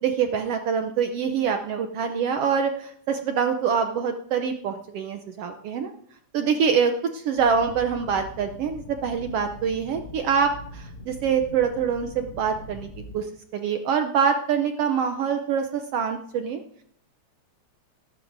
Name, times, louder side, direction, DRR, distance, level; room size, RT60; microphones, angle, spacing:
voice 1, 0.0-5.9 6.3-12.9 13.1-16.6, right 6 dB, 75° right, 6 dB, 1.4 m, -25 dB
sound 1, 7.4-13.2, left 1 dB, 50° left, 5.4 m, -42 dB
17.5 x 13.0 x 2.6 m, 0.66 s
omnidirectional pair, 3.5 m